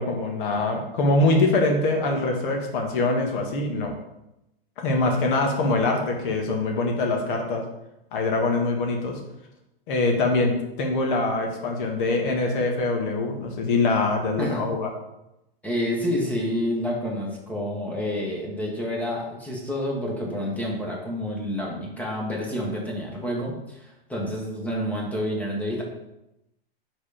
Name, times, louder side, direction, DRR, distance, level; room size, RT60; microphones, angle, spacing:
voice 1, 0.0-3.9 4.8-7.6 8.1-9.2 9.9-14.9, left 2 dB, 60° left, 2 dB, 1.6 m, -23 dB
voice 2, 14.4-14.8 15.6-25.8, equal, 5° left, -2 dB, 1.5 m, -29 dB
5.0 x 4.1 x 5.0 m, 0.90 s
hypercardioid pair, 120°, 30 cm